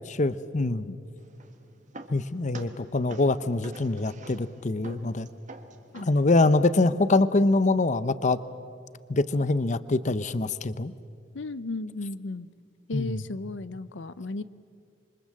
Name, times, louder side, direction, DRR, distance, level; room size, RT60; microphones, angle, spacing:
voice 1, 0.1-0.8 2.1-5.3 6.0-8.4 9.1-10.9 12.9-13.2, left 2 dB, 40° left, 15 dB, 0.7 m, -24 dB
voice 2, 0.6-1.0 2.7-2.8 5.9-6.0 11.3-12.5 12.9-14.4, left 2 dB, 90° left, 15 dB, 0.7 m, -35 dB
sound 1, 1.2-7.0, right 2 dB, 45° right, 1.7 m, -47 dB
27.0 x 24.5 x 7.6 m, 2.4 s
head